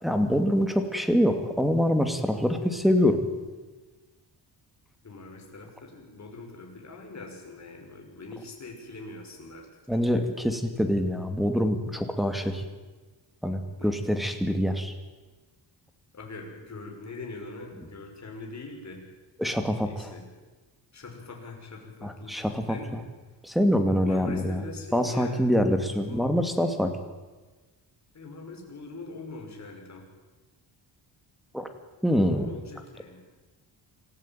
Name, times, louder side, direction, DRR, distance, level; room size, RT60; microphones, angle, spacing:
voice 1, 0.0-3.2 9.9-12.6 13.4-14.9 19.4-20.1 22.0-22.8 23.4-24.6 24.9-26.9 31.5-31.7 32.0-32.5, equal, ahead, 7 dB, 2.4 m, -25 dB
voice 2, 5.0-9.7 10.0-10.3 13.8-14.0 16.1-19.1 19.8-20.3 20.9-23.0 24.0-25.5 25.8-26.3 28.1-30.1 32.3-33.2, left 3 dB, 35° left, 1 dB, 6.0 m, -43 dB
27.0 x 14.5 x 9.2 m, 1.3 s
wide cardioid pair, 140°, 45 cm